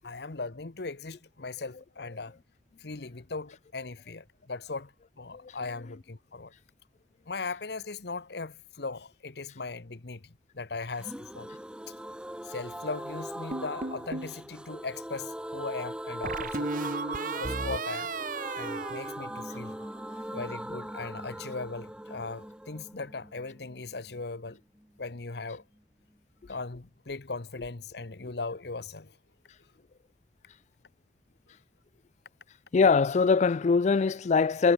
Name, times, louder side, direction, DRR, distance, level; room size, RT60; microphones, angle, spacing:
voice 1, 0.0-2.3 2.8-4.9 5.2-6.5 7.3-11.5 12.4-16.7 17.4-18.1 18.6-19.8 20.3-24.6 25.0-25.6 26.5-29.1, left 3 dB, 65° left, 1.1 m, -38 dB
sound 1, 11.0-24.6 24.8-24.9 25.2-25.3, equal, 5° right, 1.7 m, -40 dB
sound 2, 13.5-14.4 16.2-19.9, right 3 dB, 50° right, 1.6 m, -35 dB
voice 2, 32.7-34.7, left 5 dB, 40° left, 0.3 m, -23 dB
head